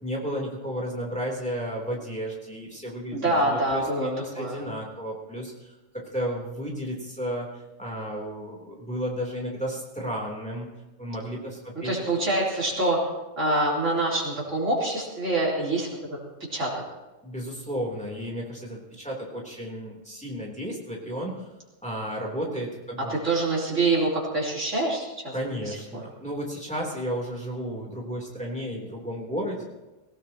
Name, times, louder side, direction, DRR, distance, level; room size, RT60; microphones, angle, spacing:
voice 1, 0.0-7.5 7.8-10.7 11.0-11.9 17.2-21.5 21.8-23.1 25.3-29.6, equal, 5° left, -2 dB, 3.2 m, -33 dB
voice 2, 3.1-4.1 4.4-4.6 11.8-13.0 13.4-16.2 16.5-16.7 23.1-25.3 25.6-26.0, right 2 dB, 80° right, -5 dB, 3.7 m, -25 dB
19.5 x 18.0 x 2.9 m, 1.1 s
omnidirectional pair, 1.3 m